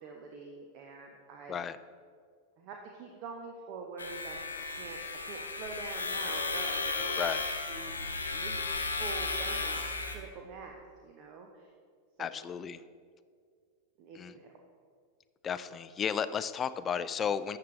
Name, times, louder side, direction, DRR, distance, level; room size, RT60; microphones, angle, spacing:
voice 1, 0.0-1.6 2.6-7.1 7.7-11.7 12.2-12.3 14.0-14.5, right 4 dB, 40° right, 2 dB, 0.8 m, -45 dB
sound 1, 4.0-10.1, left 3 dB, 75° left, 1.0 m, -34 dB
voice 2, 12.2-12.8 14.1-14.3 15.4-17.6, left 7 dB, 25° left, 14 dB, 0.3 m, -33 dB
12.5 x 7.7 x 3.2 m, 2.1 s
figure-of-eight pair, 90°, 0 cm